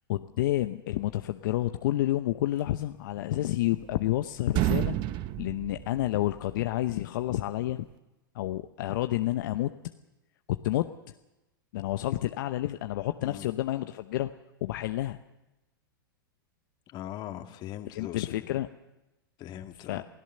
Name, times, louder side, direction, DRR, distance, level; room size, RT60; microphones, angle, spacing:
voice 1, 0.1-5.0 5.4-7.9 8.3-9.7 10.6-10.9 11.7-14.3 14.6-15.2 17.9-18.7 19.9-20.0, left 15 dB, 65° left, 8 dB, 0.8 m, -29 dB
sound 1, 3.3-4.2 4.4-6.6, right 14 dB, 45° right, 0.9 m, -30 dB
voice 2, 16.9-18.5 19.4-20.0, left 12 dB, 40° left, 6 dB, 2.0 m, -40 dB
28.0 x 17.0 x 6.8 m, 1.0 s
hypercardioid pair, 100°, 12 cm